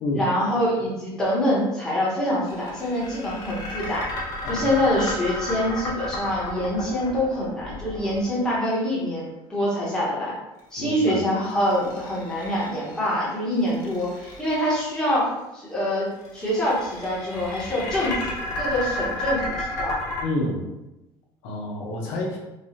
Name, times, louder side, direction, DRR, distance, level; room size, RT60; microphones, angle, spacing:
voice 1, 0.1-4.1 4.5-10.3 10.7-20.0, equal, 5° left, -7 dB, 1.0 m, -25 dB
sound 1, 2.5-8.7 11.5-13.1 13.6-15.0 16.2-20.2, left 1 dB, 40° left, 1.0 m, -32 dB
voice 2, 10.8-11.2 20.2-20.6 21.4-22.4, left 1 dB, 80° left, -1 dB, 0.9 m, -28 dB
4.7 x 2.3 x 2.8 m, 0.96 s
cardioid pair, 175°, 10 cm